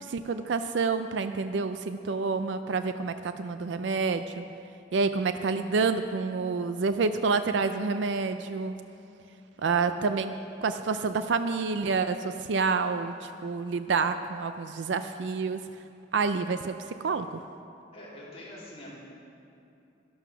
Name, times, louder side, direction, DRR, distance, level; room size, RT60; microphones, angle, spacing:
voice 1, 0.0-4.4 4.9-8.7 9.6-10.4 10.6-15.6 16.1-16.7 17.0-17.4, right 4 dB, 70° right, 10 dB, 0.4 m, -28 dB
voice 2, 17.9-18.9, left 1 dB, 35° left, -7 dB, 3.6 m, -46 dB
12.0 x 12.0 x 5.8 m, 2.7 s
head